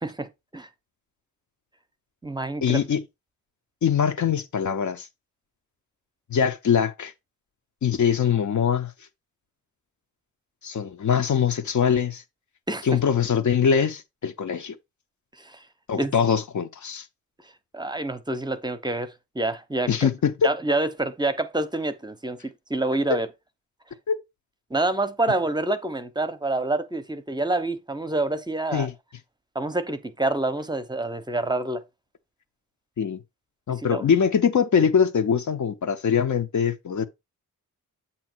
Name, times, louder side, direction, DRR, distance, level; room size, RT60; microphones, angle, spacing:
voice 1, 0.0-0.7 2.2-2.8 12.7-12.9 15.3-15.7 16.0-16.1 17.4-19.9 20.4-23.3 24.7-28.9 29.5-31.8 33.7-34.1, right 2 dB, 10° right, 0.7 m, -27 dB
voice 2, 2.6-3.0 3.8-5.1 6.3-7.1 7.8-8.9 10.6-12.2 12.8-14.7 15.9-17.1 19.9-20.5 24.1-24.2 28.7-28.9 33.0-33.2 33.7-37.1, left 7 dB, 55° left, 0.8 m, -23 dB
8.4 x 2.9 x 6.0 m
wide cardioid pair, 130°, 34 cm